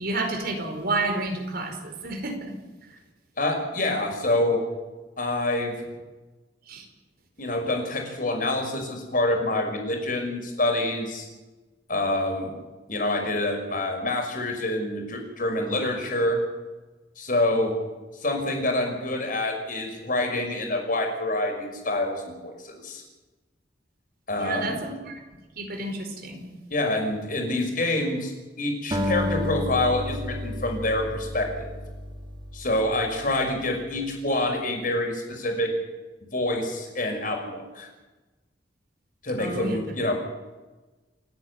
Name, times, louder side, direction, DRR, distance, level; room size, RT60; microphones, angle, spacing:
voice 1, 0.0-2.5 6.7-6.8 24.4-25.2 25.6-26.5 39.4-39.8, right 2 dB, 60° right, 3 dB, 4.8 m, -30 dB
voice 2, 3.4-4.6 5.2-5.7 7.4-11.2 11.9-12.5 12.9-16.4 17.2-17.8 18.2-23.0 24.3-24.8 26.7-28.3 28.6-31.7 32.5-35.7 36.3-37.9 39.2-40.1, left 1 dB, 50° left, 3 dB, 5.7 m, -26 dB
Acoustic guitar, 28.9-33.4, left 1 dB, 25° right, 2.7 m, -31 dB
29.0 x 10.0 x 9.6 m, 1.2 s
head